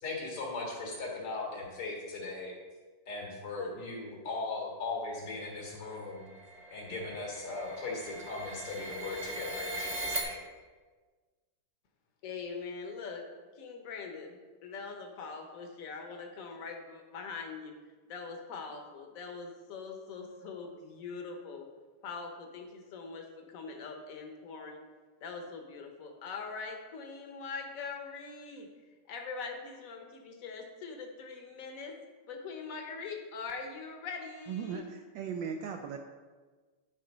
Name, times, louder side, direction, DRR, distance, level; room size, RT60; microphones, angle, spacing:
voice 1, 0.0-2.5 3.1-6.3 6.7-10.4, left 3 dB, 85° left, -2 dB, 2.8 m, -38 dB
sound 1, 5.5-10.2, right 2 dB, 30° right, 0.9 m, -40 dB
voice 2, 12.2-13.2 13.5-17.8 18.1-21.7 22.0-24.8 25.2-28.7 29.1-32.0 32.3-34.9, left 4 dB, 50° left, 3 dB, 1.1 m, -42 dB
voice 3, 34.5-36.0, right 7 dB, 75° right, 5 dB, 1.1 m, -38 dB
10.0 x 3.8 x 5.3 m, 1.4 s
omnidirectional pair, 2.4 m